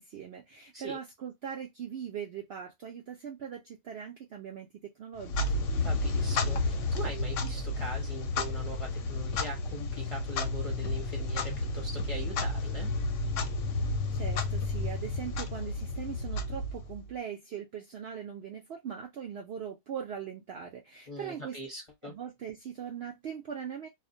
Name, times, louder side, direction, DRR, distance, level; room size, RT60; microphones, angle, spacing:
voice 1, 0.0-5.6 14.1-21.6 22.0-23.9, right 8 dB, 70° right, 0.6 m, -40 dB
Clock, 5.2-17.1, left 2 dB, 70° left, 0.8 m, -31 dB
voice 2, 5.8-12.9 21.1-22.1, right 1 dB, 30° left, 0.6 m, -41 dB
2.4 x 2.1 x 2.5 m
omnidirectional pair, 1.5 m